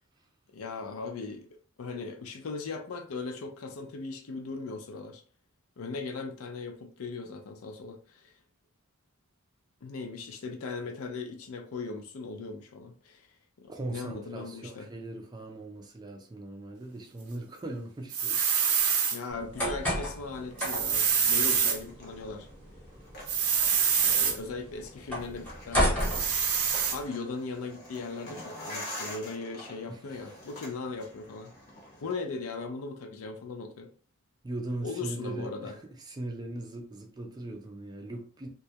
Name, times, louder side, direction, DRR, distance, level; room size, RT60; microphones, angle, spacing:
voice 1, 0.5-1.5 1.8-5.2 5.8-8.3 9.8-13.3 13.6-14.9 19.1-22.5 24.0-26.3 26.9-31.5 32.0-33.9 34.8-35.8, left 4 dB, 75° left, 0.5 m, -38 dB
voice 2, 13.7-18.6 29.9-30.0 34.4-38.5, right 2 dB, 20° right, 0.3 m, -39 dB
sound 1, 18.1-19.2 20.6-21.8 23.3-24.4 26.0-27.0, right 7 dB, 90° right, 0.5 m, -26 dB
sound 2, 19.3-27.1, equal, 5° left, 0.8 m, -34 dB
sound 3, 21.4-32.2, left 1 dB, 50° left, 0.8 m, -46 dB
2.2 x 2.0 x 2.7 m
head